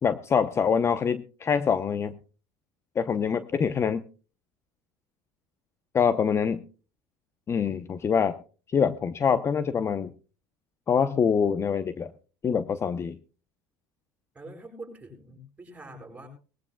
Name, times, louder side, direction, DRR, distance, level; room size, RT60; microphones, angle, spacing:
voice 1, 0.0-2.2 3.0-4.0 5.9-6.6 7.5-8.4 8.7-10.1 10.9-12.1 12.4-13.2, left 6 dB, 30° left, 12 dB, 0.8 m, -25 dB
voice 2, 14.3-16.3, right 1 dB, 15° right, 3 dB, 7.3 m, -44 dB
21.0 x 15.5 x 2.2 m, 0.35 s
supercardioid pair, 100°, 9 cm